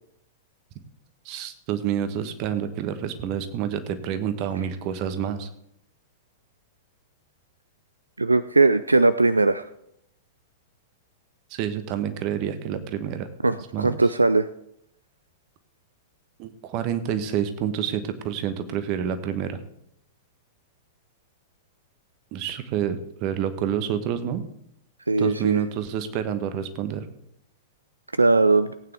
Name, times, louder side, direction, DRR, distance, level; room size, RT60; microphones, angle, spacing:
voice 1, 1.2-5.5 11.5-13.3 13.7-14.0 16.4-19.6 22.3-24.4 25.2-27.0, right 9 dB, 40° right, 10 dB, 1.2 m, -28 dB
voice 2, 8.2-9.6 13.4-14.5 25.1-25.7 28.2-28.7, right 3 dB, 80° right, 14 dB, 0.4 m, -19 dB
18.0 x 9.0 x 3.4 m, 0.74 s
figure-of-eight pair, 100°, 0 cm